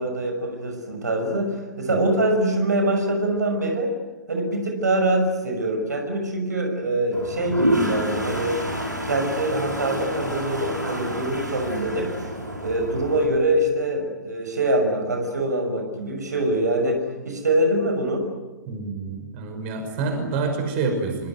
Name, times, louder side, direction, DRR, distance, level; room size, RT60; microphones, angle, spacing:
voice 1, 0.0-3.9 4.3-8.6 9.1-12.1 12.6-18.3, right 1 dB, 70° right, 5 dB, 6.1 m, -24 dB
Toilet flush, 7.1-13.3, equal, 90° right, 5.8 m, -28 dB
voice 2, 18.7-21.3, right 4 dB, 40° right, 5 dB, 5.7 m, -27 dB
25.5 x 25.0 x 9.3 m, 1.2 s
figure-of-eight pair, 110°, 10 cm